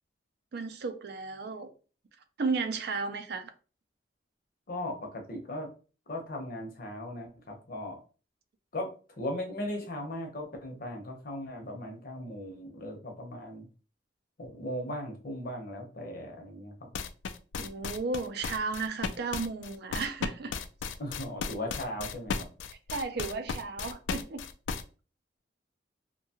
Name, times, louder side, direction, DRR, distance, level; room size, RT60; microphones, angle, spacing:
voice 1, 0.5-1.7 2.4-3.5 17.6-20.5 22.9-24.4, right 4 dB, 65° right, 0.4 m, -34 dB
voice 2, 4.7-5.7 6.1-8.0 8.7-8.9 9.2-13.7 14.4-16.9 21.0-22.5, left 1 dB, 55° left, 0.7 m, -38 dB
sound 1, 16.9-24.8, left 5 dB, 80° left, 0.3 m, -35 dB
2.7 x 2.2 x 2.8 m
head